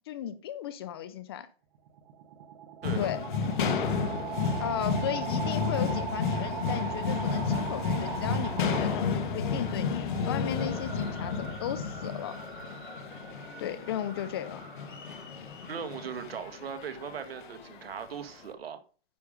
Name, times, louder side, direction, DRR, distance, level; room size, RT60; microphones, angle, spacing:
voice 1, 0.1-1.5 3.0-3.2 4.6-12.4 13.6-14.6, left 10 dB, 25° left, 0.5 m, -35 dB
sound 1, 1.7-9.5, right 8 dB, 35° right, 1.3 m, -39 dB
sound 2, 2.8-18.1, left 5 dB, 50° left, 1.6 m, -32 dB
sound 3, 4.7-17.1, right 2 dB, 15° right, 3.4 m, -49 dB
voice 2, 15.7-18.8, right 7 dB, 70° right, 1.9 m, -39 dB
9.6 x 6.8 x 5.1 m
hypercardioid pair, 155°, 31 cm